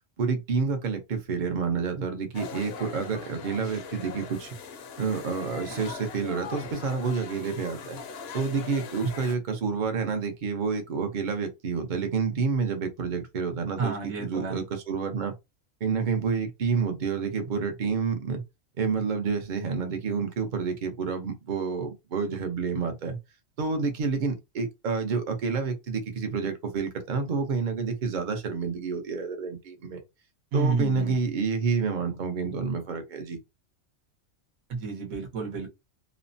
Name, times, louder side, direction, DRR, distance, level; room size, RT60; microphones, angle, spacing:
voice 1, 0.2-4.6 5.0-8.0 8.3-13.9 14.2-15.3 15.8-18.4 18.8-23.2 23.6-30.0 30.5-33.4, right 5 dB, 45° right, 0.7 m, -29 dB
sound 1, 2.3-9.4, left 5 dB, 60° left, 0.7 m, -40 dB
voice 2, 13.8-14.6 30.5-31.2 34.7-35.7, right 4 dB, 70° right, 1.3 m, -30 dB
3.1 x 2.0 x 2.6 m
omnidirectional pair, 1.4 m